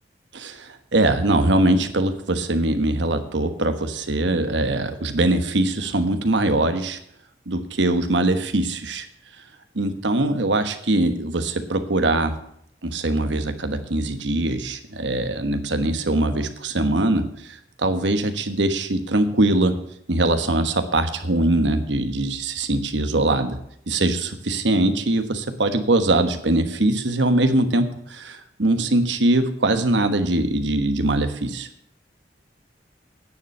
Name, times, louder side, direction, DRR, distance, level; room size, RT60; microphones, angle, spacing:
voice 1, 0.3-7.0 7.5-9.1 9.7-12.3 12.8-19.7 20.1-23.6 23.9-31.7, right 2 dB, 85° right, 8 dB, 1.3 m, -22 dB
10.0 x 7.0 x 8.4 m, 0.71 s
head